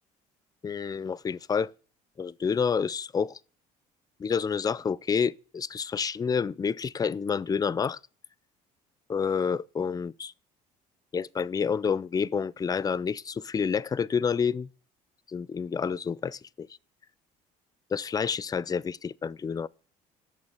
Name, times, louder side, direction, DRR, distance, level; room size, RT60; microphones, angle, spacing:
voice 1, 0.6-1.7 2.2-3.4 4.2-8.0 9.1-10.3 11.1-14.7 15.3-16.7 17.9-19.7, left 6 dB, 25° left, 0.4 m, -29 dB
8.7 x 7.1 x 8.0 m
supercardioid pair, 95°, 16 cm